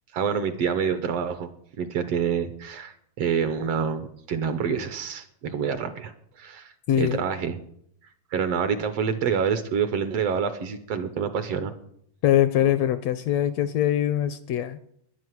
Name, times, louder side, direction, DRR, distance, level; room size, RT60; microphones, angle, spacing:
voice 1, 0.1-1.5 1.8-7.6 8.3-11.7, right 7 dB, 65° right, 11 dB, 1.7 m, -27 dB
voice 2, 6.9-7.2 12.2-14.9, left 11 dB, 75° left, 13 dB, 1.6 m, -23 dB
11.0 x 10.5 x 9.5 m, 0.71 s
omnidirectional pair, 3.4 m